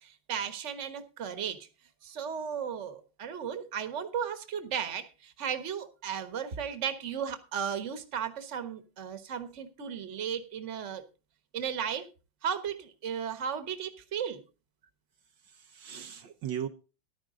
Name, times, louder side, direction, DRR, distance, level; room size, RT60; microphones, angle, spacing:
voice 1, 0.0-1.7 2.0-11.0 11.5-12.1 12.4-14.4, right 7 dB, 40° right, 1.5 m, -35 dB
voice 2, 15.4-16.7, right 9 dB, 70° right, 1.5 m, -38 dB
14.5 x 11.5 x 3.7 m
omnidirectional pair, 2.1 m